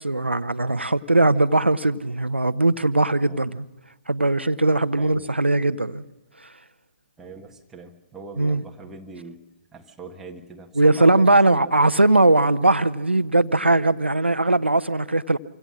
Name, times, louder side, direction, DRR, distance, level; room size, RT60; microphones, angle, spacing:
voice 1, 0.0-3.6 4.1-6.0 8.4-8.6 10.8-15.4, right 2 dB, 85° right, 1.0 m, -19 dB
voice 2, 5.0-5.3 7.2-9.4 9.7-11.9, right 4 dB, 5° right, 1.6 m, -41 dB
27.0 x 17.0 x 6.4 m
figure-of-eight pair, 130°, 6 cm